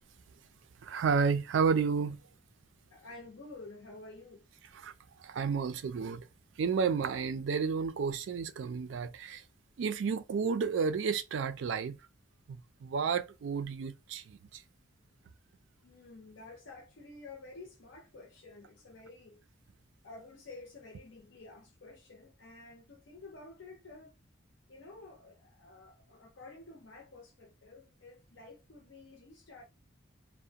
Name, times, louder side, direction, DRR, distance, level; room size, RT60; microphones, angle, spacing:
voice 1, 0.8-2.2 4.7-4.9 5.2-6.3 6.6-9.4 9.8-12.0 12.5-14.6, right 5 dB, 70° right, 0.3 m, -31 dB
voice 2, 2.9-4.4 15.8-19.4 20.0-24.1 24.7-29.6, left 3 dB, 65° left, 0.5 m, -51 dB
2.4 x 2.1 x 2.7 m
head